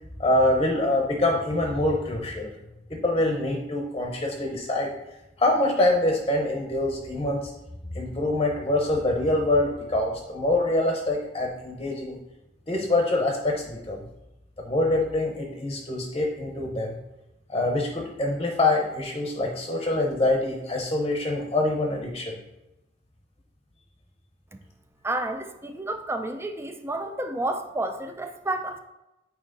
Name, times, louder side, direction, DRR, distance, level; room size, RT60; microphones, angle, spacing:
voice 1, 0.2-2.5 2.9-4.9 5.4-7.5 7.9-12.2 12.7-14.0 14.6-17.0 17.5-22.4, left 2 dB, 25° left, 1 dB, 0.8 m, -25 dB
voice 2, 25.0-28.8, right 2 dB, 15° right, 7 dB, 0.4 m, -30 dB
8.9 x 3.0 x 3.9 m, 0.95 s
head